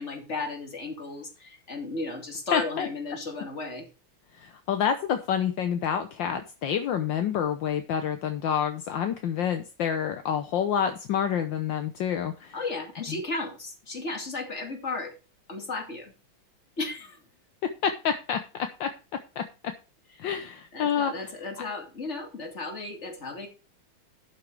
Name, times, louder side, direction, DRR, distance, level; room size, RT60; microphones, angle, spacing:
voice 1, 0.0-3.9 12.5-15.1 15.5-16.1 16.8-17.2 20.7-23.5, left 3 dB, 35° left, 3 dB, 2.8 m, -34 dB
voice 2, 2.5-2.9 4.4-12.6 17.8-18.9 19.4-19.5 20.2-21.1, left 8 dB, 70° left, 8 dB, 1.6 m, -28 dB
12.0 x 6.5 x 4.6 m, 0.33 s
omnidirectional pair, 2.2 m